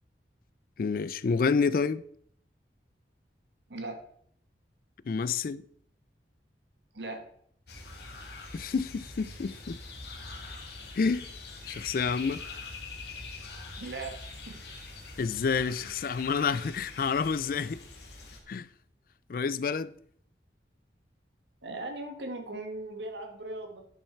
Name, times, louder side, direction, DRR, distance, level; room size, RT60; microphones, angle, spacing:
voice 1, 0.8-2.0 5.1-5.6 8.5-9.8 10.9-11.2 11.7-12.4 15.2-17.8 18.5-18.7 19.3-19.9, left 5 dB, 50° left, 0.4 m, -29 dB
voice 2, 3.7-4.0 6.9-7.3 13.8-14.6 21.6-23.9, right 2 dB, 80° right, 1.6 m, -39 dB
sound 1, 7.7-18.4, left 3 dB, 70° left, 1.8 m, -44 dB
10.0 x 5.6 x 4.5 m
head